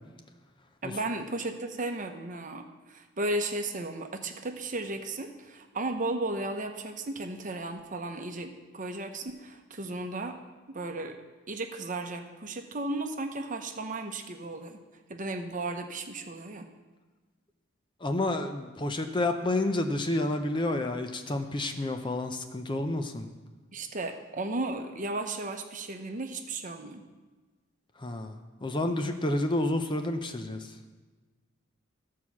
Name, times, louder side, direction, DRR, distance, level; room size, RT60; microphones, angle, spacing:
voice 1, 0.8-10.3 10.7-14.8 15.1-16.7 23.7-27.0, right 2 dB, 40° right, 5 dB, 0.9 m, -35 dB
voice 2, 18.0-23.3 28.0-30.8, left 2 dB, 25° left, 6 dB, 0.6 m, -30 dB
13.0 x 4.7 x 7.2 m, 1.3 s
head